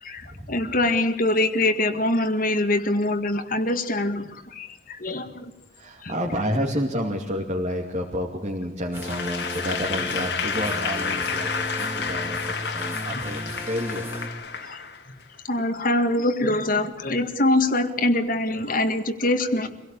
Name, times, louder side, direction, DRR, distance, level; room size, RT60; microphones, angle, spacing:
voice 1, 0.0-5.5 6.0-6.1 13.1-13.2 14.7-14.8 15.5-19.7, left 1 dB, 50° left, 7 dB, 1.9 m, -24 dB
voice 2, 5.7-13.4 13.7-14.1, equal, 40° right, -1 dB, 2.7 m, -30 dB
sound 1, 8.9-14.3, equal, 15° right, 2.3 m, -35 dB
Applause / Crowd, 9.0-15.3, left 5 dB, 75° left, 2.5 m, -30 dB
25.5 x 17.5 x 8.6 m, 0.90 s
head